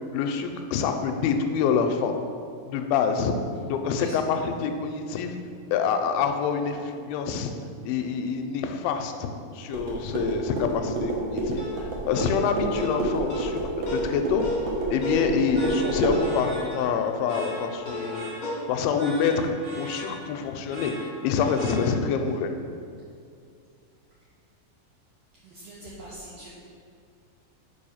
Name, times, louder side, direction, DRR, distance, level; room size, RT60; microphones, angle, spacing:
voice 1, 0.1-2.1 2.6-3.3 3.6-5.4 5.7-7.5 7.9-14.4 14.9-18.3 18.7-19.5 19.8-20.9 21.2-22.5, left 6 dB, 85° left, 5 dB, 2.3 m, -26 dB
sound 1, 9.7-16.2, right 2 dB, 65° right, 1.6 m, -29 dB
sound 2, 11.6-18.6, left 1 dB, 45° left, 1.3 m, -35 dB
sound 3, 15.5-22.3, right 1 dB, 50° right, 2.4 m, -41 dB
voice 2, 25.4-26.5, right 1 dB, 80° right, -7 dB, 1.5 m, -42 dB
5.4 x 5.0 x 5.6 m, 2.3 s
omnidirectional pair, 4.3 m